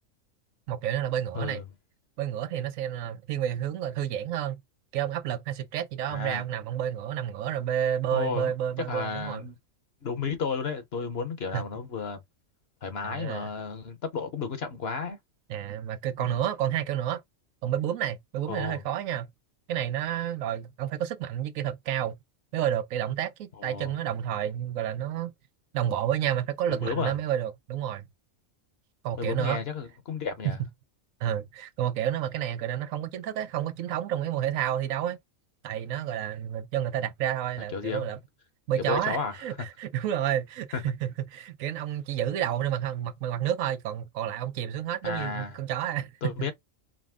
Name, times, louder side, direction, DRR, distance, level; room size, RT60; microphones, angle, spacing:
voice 1, 0.7-1.6 2.2-4.6 4.9-9.5 11.5-11.6 13.0-13.5 15.5-17.2 17.6-19.3 19.7-22.2 22.5-25.3 25.7-28.1 29.0-29.6 31.2-35.2 35.6-38.2 38.7-46.5, right 10 dB, 85° right, 1.0 m, -30 dB
voice 2, 6.1-6.4 8.1-8.5 8.9-9.5 10.0-12.2 12.8-15.2 16.2-16.4 18.5-18.8 23.6-23.9 26.7-27.1 29.2-30.6 37.7-38.1 38.8-39.7 40.7-40.8 45.0-45.5 46.2-46.5, left 5 dB, 55° left, 1.1 m, -33 dB
5.0 x 2.1 x 3.5 m
omnidirectional pair, 1.4 m